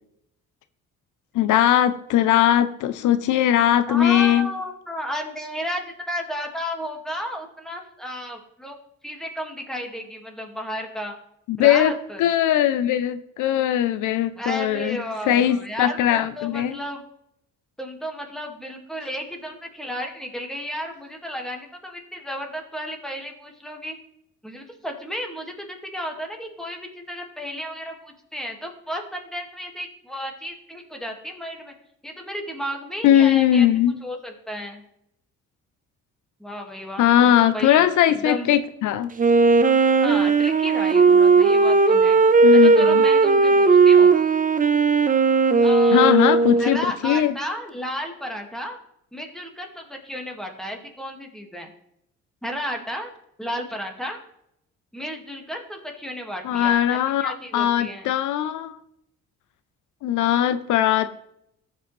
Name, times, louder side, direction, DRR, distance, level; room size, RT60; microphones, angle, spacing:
voice 1, 1.3-4.5 11.5-11.9 12.2-15.0 15.3-16.8 33.0-33.9 37.0-39.1 42.4-43.0 45.9-47.3 56.4-58.8 60.0-61.2, left 11 dB, 80° left, 12 dB, 0.6 m, -20 dB
voice 2, 3.9-8.8 9.0-11.1 11.6-12.2 14.4-17.0 17.8-24.0 24.4-31.7 32.0-33.7 34.0-34.8 36.4-38.5 40.0-42.2 42.5-44.2 45.6-46.2 46.6-48.8 49.1-51.7 52.4-53.1 53.4-54.2 54.9-58.1, equal, ahead, 2 dB, 1.9 m, -33 dB
Wind instrument woodwind instrument, 39.2-46.8, right 4 dB, 25° right, 0.7 m, -16 dB
14.5 x 5.4 x 3.2 m, 0.75 s
cardioid pair, 90°, 30 cm